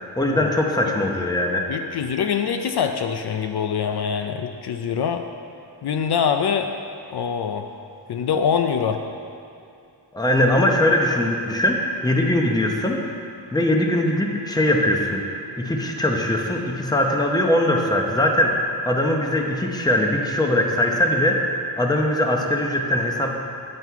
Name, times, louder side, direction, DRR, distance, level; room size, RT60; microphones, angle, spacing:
voice 1, 0.2-1.7 10.1-15.2 15.6-23.3, left 1 dB, 10° left, 1 dB, 0.8 m, -21 dB
voice 2, 1.7-5.2 5.8-6.7 7.1-7.7 8.1-9.0, left 7 dB, 65° left, 6 dB, 0.5 m, -24 dB
9.8 x 7.5 x 4.6 m, 2.6 s
wide cardioid pair, 155°, 43 cm